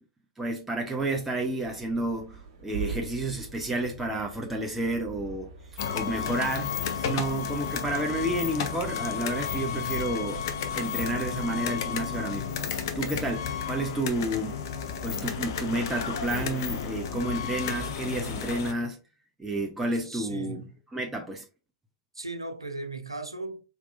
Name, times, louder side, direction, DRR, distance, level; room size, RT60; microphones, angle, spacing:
voice 1, 0.4-5.5 5.9-10.4 10.7-14.6 15.0-19.0 19.4-20.6 20.9-21.4, right 2 dB, 10° right, 0.7 m, -31 dB
sound 1, 1.6-18.5, right 5 dB, 50° right, 1.5 m, -45 dB
sound 2, 5.8-18.7, left 7 dB, 55° left, 0.8 m, -32 dB
voice 2, 20.0-20.8 22.1-23.6, right 2 dB, 85° right, 0.7 m, -37 dB
4.4 x 3.6 x 2.5 m
figure-of-eight pair, 100°, 3 cm